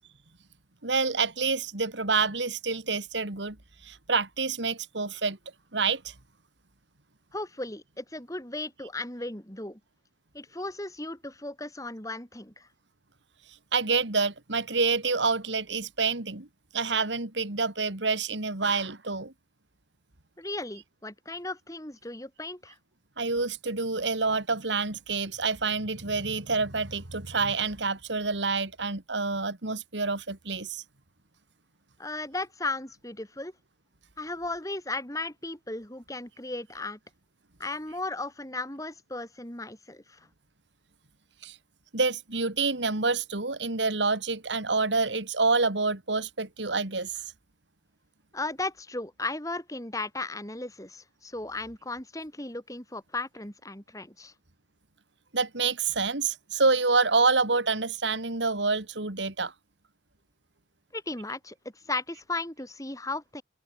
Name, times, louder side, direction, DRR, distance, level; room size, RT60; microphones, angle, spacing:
voice 1, 0.8-3.6 3.8-5.4 5.7-6.1 13.7-16.5 16.7-19.3 23.2-30.8 41.4-41.6 41.9-47.1 55.3-59.5, right 4 dB, 90° right, 2.8 m, -27 dB
voice 2, 7.3-9.8 10.3-12.7 20.4-22.7 32.0-33.5 34.2-37.0 37.6-40.2 48.3-54.3 60.9-61.5 61.9-63.4, left 2 dB, 20° left, 4.6 m, -36 dB
open air
head